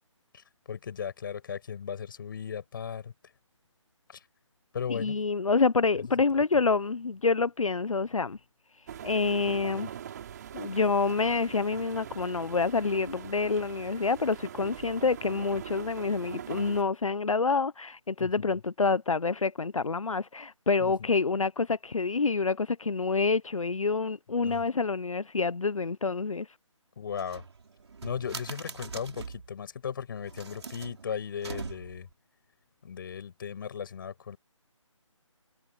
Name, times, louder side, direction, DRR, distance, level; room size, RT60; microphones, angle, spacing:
voice 1, 0.3-3.1 4.1-4.2 4.7-5.2 6.4-6.5 18.2-18.6 20.8-20.9 24.4-24.6 27.0-27.4 28.0-32.1 32.8-34.4, left 7 dB, 40° left, 6.9 m, -37 dB
voice 2, 4.9-8.4 9.0-9.9 10.5-26.5, left 4 dB, 75° left, 0.9 m, -27 dB
sound 1, 8.9-16.8, right 9 dB, 30° right, 3.1 m, -42 dB
sound 2, 27.1-29.5 30.2-32.1, right 5 dB, 55° right, 3.6 m, -42 dB
figure-of-eight pair, 155°, 17 cm